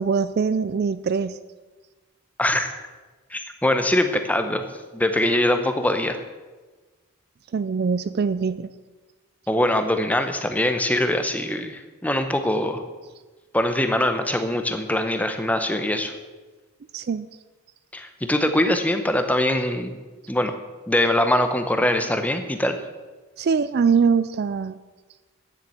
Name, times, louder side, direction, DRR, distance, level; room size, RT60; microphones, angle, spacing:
voice 1, 0.0-1.4 7.5-8.7 16.9-17.3 23.4-24.8, right 5 dB, 45° right, 14 dB, 0.3 m, -22 dB
voice 2, 2.4-2.8 3.3-4.6 4.9-6.2 9.5-12.8 13.5-16.1 17.9-20.0 20.3-20.5 20.9-22.8, left 1 dB, 5° left, 7 dB, 0.8 m, -22 dB
9.9 x 7.5 x 7.6 m, 1.3 s
head